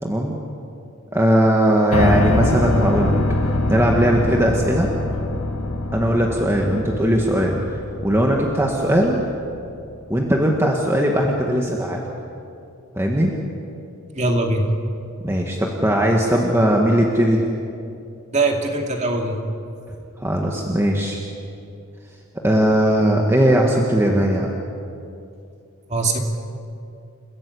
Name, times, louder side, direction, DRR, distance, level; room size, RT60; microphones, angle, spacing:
voice 1, 0.0-0.3 1.1-4.9 5.9-9.2 10.1-12.0 12.9-13.3 15.2-17.4 20.2-21.2 22.4-24.5, right 1 dB, 10° right, 0 dB, 1.7 m, -19 dB
Piano, 1.9-9.9, left 2 dB, 85° left, 1.6 m, -24 dB
voice 2, 14.1-14.7 18.3-19.4 25.9-26.2, right 2 dB, 30° right, 2 dB, 2.5 m, -21 dB
29.5 x 16.0 x 8.4 m, 2.6 s
head